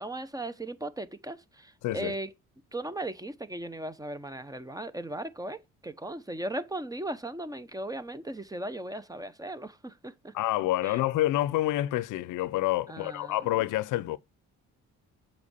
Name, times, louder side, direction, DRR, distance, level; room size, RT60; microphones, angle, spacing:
voice 1, 0.0-2.3 2.7-10.3 10.8-11.0 12.9-13.5, right 1 dB, 10° right, 0.8 m, -37 dB
voice 2, 1.8-2.1 10.3-14.2, left 15 dB, 90° left, 0.6 m, -28 dB
7.5 x 4.6 x 4.1 m
cardioid pair, 90°, 30 cm